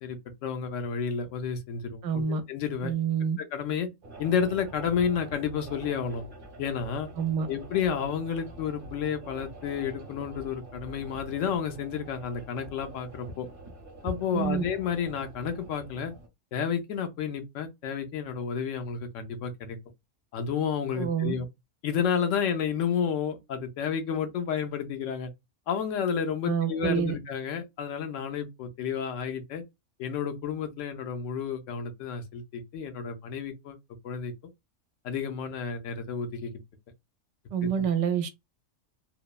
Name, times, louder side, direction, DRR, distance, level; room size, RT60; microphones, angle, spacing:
voice 1, 0.0-2.2 2.5-2.9 3.4-3.9 4.2-6.2 6.6-7.1 7.5-13.5 14.0-16.1 16.5-19.8 20.3-21.5 21.8-25.3 25.7-29.6 30.0-33.8 34.0-34.3 35.0-36.5, left 7 dB, 80° left, 1.0 m, -31 dB
voice 2, 2.0-2.4 2.8-3.4 7.2-7.5 14.3-14.6 21.0-21.3 26.5-27.2 37.5-38.3, right 7 dB, 75° right, 0.9 m, -27 dB
sound 1, 4.0-16.3, right 1 dB, 45° right, 0.9 m, -45 dB
3.0 x 2.0 x 2.2 m
omnidirectional pair, 1.3 m